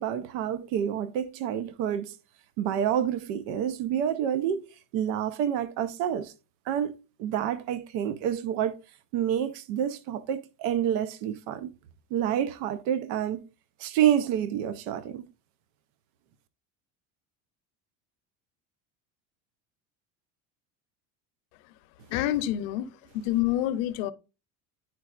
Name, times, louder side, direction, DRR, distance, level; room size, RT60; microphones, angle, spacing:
voice 1, 0.0-2.1 2.6-4.6 4.9-6.3 6.7-8.8 9.1-11.7 12.1-13.4 13.8-15.3, right 9 dB, 75° right, 0.7 m, -28 dB
voice 2, 22.1-24.1, left 13 dB, 75° left, 0.7 m, -28 dB
9.7 x 4.7 x 2.4 m
supercardioid pair, 95°, 39 cm